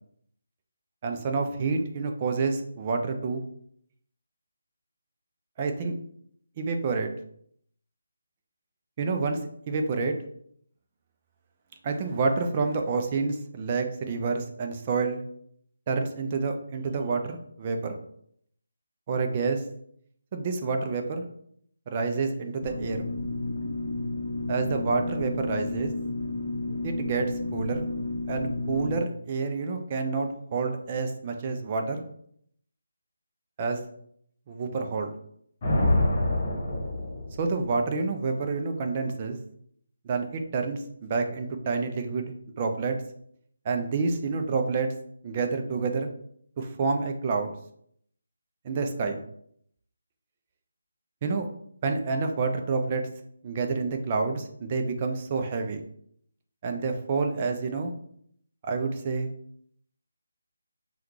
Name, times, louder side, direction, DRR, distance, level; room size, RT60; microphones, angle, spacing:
voice 1, 1.0-3.4 5.6-5.9 6.6-7.1 9.0-9.4 9.7-10.2 11.8-15.2 15.9-18.0 19.1-19.6 20.3-21.2 21.9-23.0 24.5-25.9 26.8-27.8 28.3-32.0 33.6-33.8 34.5-35.1 37.4-39.4 40.0-43.0 43.6-44.9 45.2-46.1 46.6-47.5 48.6-49.2 51.2-51.5 51.8-53.0 53.4-55.8 56.6-57.9 58.6-59.3, right 4 dB, 30° right, 5 dB, 0.4 m, -28 dB
sound 1, 22.6-29.0, left 2 dB, 65° left, 0.6 m, -32 dB
Thunder, 35.6-37.8, left 1 dB, 35° left, 1.1 m, -26 dB
3.5 x 2.3 x 3.1 m, 0.67 s
figure-of-eight pair, 160°, 0 cm